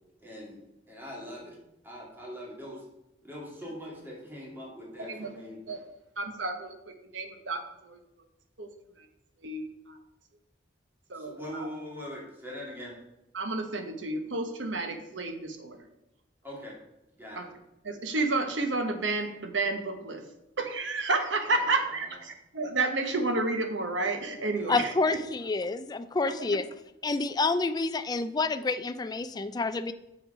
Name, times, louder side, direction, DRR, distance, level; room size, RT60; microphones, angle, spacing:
voice 1, 0.2-0.6 0.9-1.6 1.8-2.8 3.2-5.6 11.1-12.9 16.4-16.7 17.2-17.5 21.5-21.7 24.5-25.2, equal, 10° right, -4 dB, 2.5 m, -42 dB
voice 2, 5.0-5.3 5.7-5.8 6.2-8.0 8.6-8.7 9.0-9.1 9.4-10.0 11.1-11.7 13.3-15.9 17.3-17.5 17.8-20.2 20.6-24.9 26.3-26.6, right 3 dB, 80° right, 6 dB, 1.1 m, -31 dB
voice 3, 24.7-26.7 27.0-29.9, left 3 dB, 20° left, 10 dB, 0.4 m, -28 dB
7.0 x 6.2 x 5.1 m, 0.89 s
head